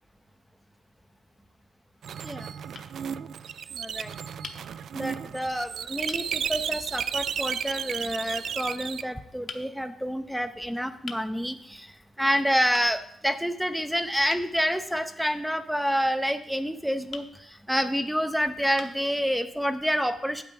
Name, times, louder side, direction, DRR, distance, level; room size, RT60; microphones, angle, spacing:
sound 1, 1.0-1.6 2.3-2.4 2.7-2.9 4.4-4.6 5.5-5.6 6.1-6.3 7.7-7.9 9.5-9.7 11.1-11.3 12.7-12.9 14.3-14.5 17.1-17.3 18.1-18.2 18.8-19.1, left 5 dB, 45° left, 0.8 m, -41 dB
sound 2, 2.0-9.0, right 8 dB, 65° right, 0.3 m, -33 dB
voice 1, 2.2-2.5 3.7-4.1 4.9-20.4, equal, ahead, 9 dB, 0.5 m, -28 dB
8.4 x 8.3 x 4.7 m, 0.72 s
wide cardioid pair, 155°, 0 cm